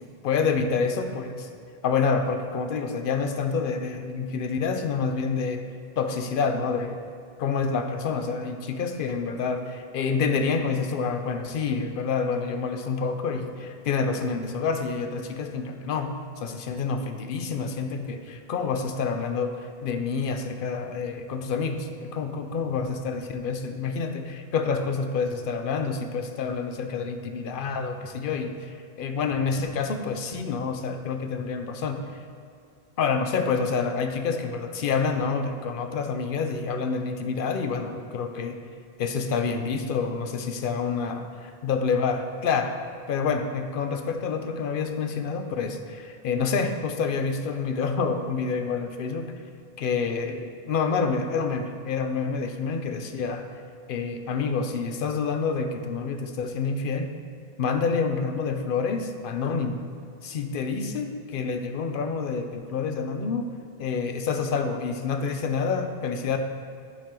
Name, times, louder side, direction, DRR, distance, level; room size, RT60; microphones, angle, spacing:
voice 1, 0.0-1.5 1.8-5.6 6.0-7.0 7.4-32.0 33.0-38.6 39.0-41.3 41.6-42.7 43.1-49.3 49.8-53.4 53.9-57.1 57.6-59.8 60.2-63.5 63.8-66.4, left 5 dB, 60° left, 6 dB, 0.7 m, -28 dB
11.5 x 4.4 x 3.7 m, 2.3 s
omnidirectional pair, 1.1 m